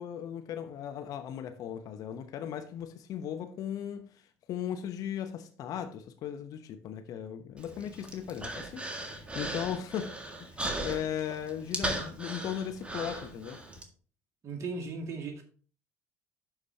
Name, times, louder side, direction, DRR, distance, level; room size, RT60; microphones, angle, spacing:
voice 1, 0.0-4.1 4.5-10.1 10.4-13.6, left 9 dB, 50° left, 0.9 m, -37 dB
Human voice, 7.6-13.8, right 1 dB, 15° right, 1.8 m, -38 dB
voice 2, 14.4-15.4, right 4 dB, 40° right, 2.1 m, -37 dB
11.5 x 4.9 x 2.8 m
figure-of-eight pair, 60°, 8 cm